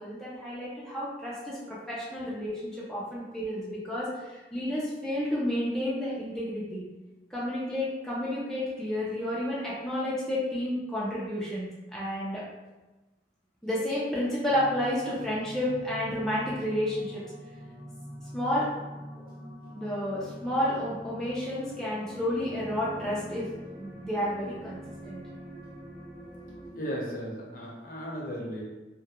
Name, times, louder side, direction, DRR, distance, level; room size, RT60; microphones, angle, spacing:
voice 1, 0.0-6.8 7.3-11.7 11.9-12.4 13.6-17.2 18.3-18.7 19.7-23.5 23.8-24.8 25.1-25.2, left 1 dB, 5° left, -8 dB, 0.4 m, -31 dB
sound 1, 14.5-26.7, equal, 60° right, 0.9 m, -44 dB
voice 2, 26.7-28.6, equal, 55° left, -4 dB, 0.6 m, -35 dB
2.3 x 2.1 x 2.8 m, 1.1 s
head